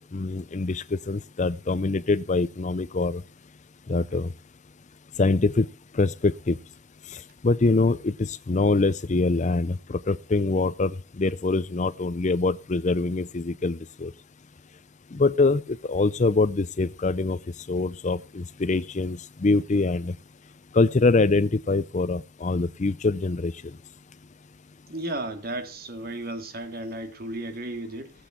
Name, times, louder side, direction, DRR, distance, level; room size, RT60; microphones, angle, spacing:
voice 1, 0.1-3.2 3.9-4.3 5.2-5.7 5.9-6.6 7.1-14.1 15.1-17.4 17.7-20.2 20.7-23.7, left 3 dB, 35° left, 0.5 m, -24 dB
voice 2, 24.9-28.1, right 1 dB, 45° right, 2.3 m, -34 dB
18.5 x 8.1 x 4.4 m
head